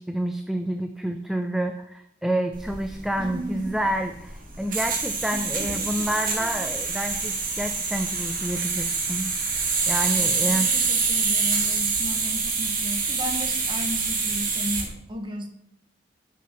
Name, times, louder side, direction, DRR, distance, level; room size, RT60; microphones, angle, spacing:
voice 1, 0.0-9.3 9.9-10.7, right 1 dB, ahead, 6 dB, 0.4 m, -28 dB
sound 1, 2.5-14.9, right 4 dB, 45° right, 2.1 m, -26 dB
voice 2, 3.2-3.8 5.3-6.7 10.2-15.5, equal, 25° right, 4 dB, 1.2 m, -35 dB
7.6 x 6.7 x 5.9 m, 0.81 s
head